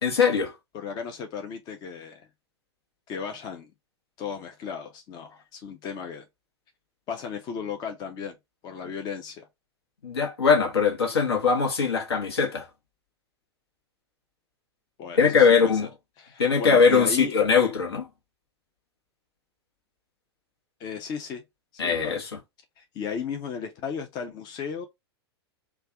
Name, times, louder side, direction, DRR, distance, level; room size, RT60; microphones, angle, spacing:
voice 1, 0.0-0.5 10.0-12.6 15.1-15.9 16.4-18.1 21.8-22.2, left 5 dB, 70° left, 1.2 m, -21 dB
voice 2, 0.7-2.3 3.1-3.7 4.2-6.3 7.1-8.4 8.6-9.5 15.0-15.7 16.2-17.3 20.8-21.4 21.8-22.2 22.8-24.9, left 6 dB, 30° left, 0.6 m, -35 dB
3.3 x 2.4 x 3.7 m
figure-of-eight pair, 95°, 14 cm